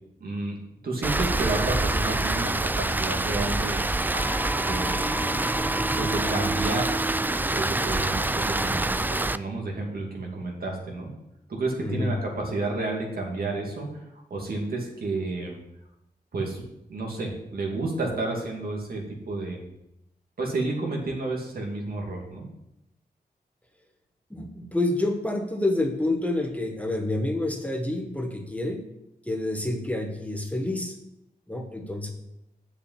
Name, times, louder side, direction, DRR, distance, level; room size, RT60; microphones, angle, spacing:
voice 1, 0.2-0.6 0.8-3.8 4.6-5.4 6.0-7.0 7.5-11.1 11.5-14.0 14.3-15.6 16.3-16.6 16.9-19.6 20.4-22.5, right 2 dB, 70° right, 0 dB, 2.6 m, -31 dB
Rain, 1.0-9.4, right 2 dB, 10° right, 0.3 m, -26 dB
sound 1, 4.1-6.1, left 1 dB, 35° left, 1.3 m, -36 dB
voice 2, 11.8-12.1 24.3-28.8 29.2-31.0 31.5-32.1, left 2 dB, 10° left, 3 dB, 1.4 m, -28 dB
8.0 x 7.1 x 7.5 m, 0.85 s
wide cardioid pair, 120°, 16 cm